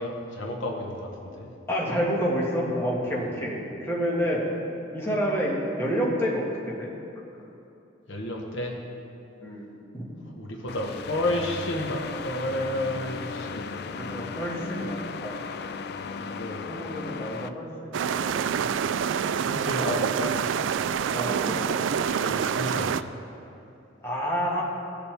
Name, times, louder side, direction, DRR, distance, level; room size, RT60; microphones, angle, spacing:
voice 1, 0.0-1.5 3.1-3.3 8.1-8.7 10.4-13.7 15.9-16.6 19.5-20.3 22.1-23.1, left 1 dB, 80° left, 0 dB, 1.3 m, -31 dB
voice 2, 1.7-4.5 4.9-6.9 9.4-9.6 9.9-10.1 13.9-15.5 16.7-18.2 19.8-20.0 21.1-21.8 24.0-24.6, equal, 15° left, -5 dB, 1.8 m, -29 dB
sound 1, 10.7-17.5, left 5 dB, 55° left, 0.4 m, -36 dB
sound 2, 17.9-23.0, right 7 dB, 80° right, 0.3 m, -26 dB
18.0 x 7.0 x 3.4 m, 2.8 s
head